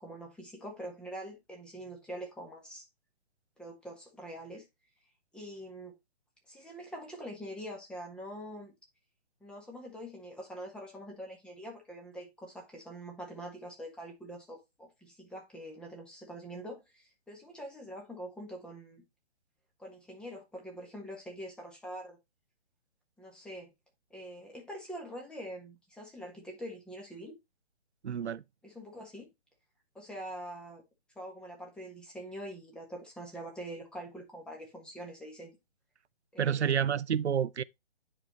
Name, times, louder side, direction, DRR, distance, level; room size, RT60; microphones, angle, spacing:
voice 1, 0.0-2.9 3.6-4.6 5.3-5.9 6.5-8.7 9.4-19.0 19.8-22.2 23.2-23.7 24.1-27.3 28.6-29.3 29.9-30.8 31.1-35.6 36.3-36.9, equal, 5° left, 1.3 m, -44 dB
voice 2, 28.0-28.4 36.4-37.6, right 8 dB, 90° right, 0.5 m, -29 dB
9.8 x 4.5 x 3.0 m
figure-of-eight pair, 135°, 33 cm